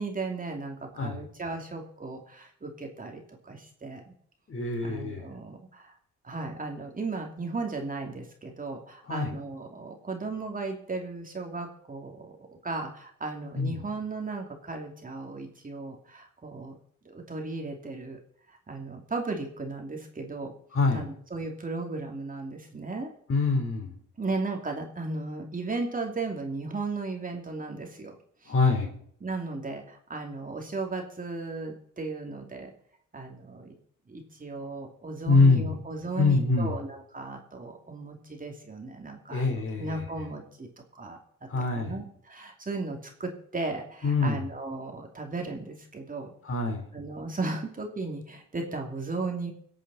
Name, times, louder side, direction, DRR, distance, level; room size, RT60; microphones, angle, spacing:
voice 1, 0.0-4.1 4.8-5.9 6.2-16.7 17.0-18.2 18.5-20.5 20.9-23.1 24.2-28.1 28.4-28.5 29.2-32.7 33.1-33.7 34.1-40.7 41.0-41.2 41.7-46.3 46.9-49.5, right 3 dB, 25° right, 2 dB, 2.8 m, -36 dB
voice 2, 4.5-5.3 9.0-9.3 13.5-13.8 20.7-21.1 23.3-23.9 28.5-28.9 35.3-35.8 36.2-36.8 39.3-40.1 41.5-42.0 44.0-44.4 46.4-46.9, left 3 dB, 45° left, 3 dB, 4.0 m, -25 dB
22.5 x 8.5 x 4.2 m, 0.62 s
cardioid pair, 90°, 30 cm